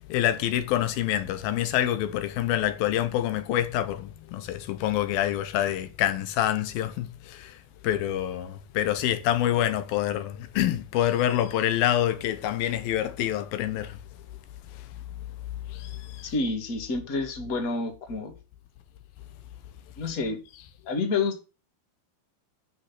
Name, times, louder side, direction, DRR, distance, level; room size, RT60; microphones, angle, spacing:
voice 1, 0.1-14.0 15.7-16.3, left 12 dB, 80° left, 2.8 m, -27 dB
voice 2, 16.2-18.3 20.0-20.4 20.9-21.4, left 3 dB, 30° left, 2.1 m, -29 dB
11.0 x 6.4 x 6.0 m
omnidirectional pair, 4.3 m